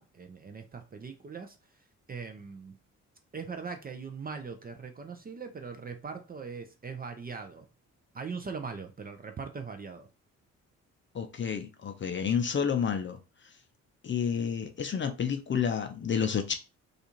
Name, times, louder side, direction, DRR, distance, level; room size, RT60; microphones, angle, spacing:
voice 1, 0.0-1.6 2.1-2.8 3.3-7.7 8.1-10.1, right 5 dB, 25° right, 0.4 m, -40 dB
voice 2, 11.1-13.2 14.0-16.5, left 7 dB, 30° left, 0.5 m, -30 dB
2.5 x 2.4 x 2.8 m
hypercardioid pair, 40°, 38 cm